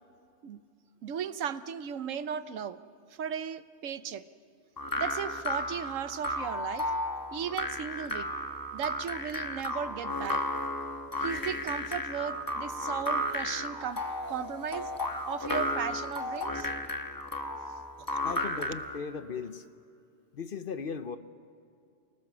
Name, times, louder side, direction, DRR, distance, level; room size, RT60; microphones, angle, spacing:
voice 1, 1.0-2.8 3.2-4.2 4.9-6.9 7.3-8.3 8.7-10.4 11.2-14.9 15.2-16.7 18.1-18.2, right 8 dB, 85° right, 13 dB, 1.2 m, -36 dB
sound 1, 4.8-19.0, left 1 dB, 15° left, 1.1 m, -34 dB
voice 2, 18.2-19.6 20.3-21.2, left 5 dB, 50° left, 10 dB, 0.9 m, -37 dB
29.0 x 19.5 x 6.1 m, 2.5 s
omnidirectional pair, 1.3 m